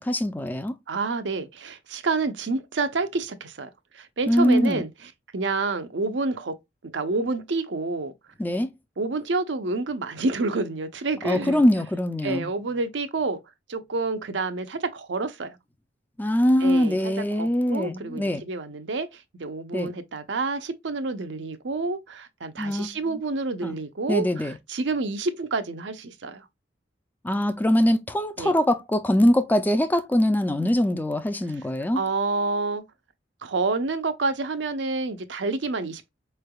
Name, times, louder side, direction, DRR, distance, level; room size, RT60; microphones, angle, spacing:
voice 1, 0.0-0.7 4.3-4.8 8.4-8.7 11.2-12.5 16.2-18.4 19.7-19.9 22.6-22.9 23.6-23.8 24.1-24.5 27.2-32.0, left 1 dB, 10° left, 0.3 m, -22 dB
voice 2, 0.9-3.7 3.9-4.9 5.3-6.5 6.9-8.1 9.0-11.6 12.2-13.4 13.7-15.6 16.6-26.4 28.4-28.6 31.9-32.8 33.4-36.1, right 3 dB, 75° right, 0.6 m, -28 dB
4.4 x 3.3 x 2.2 m
head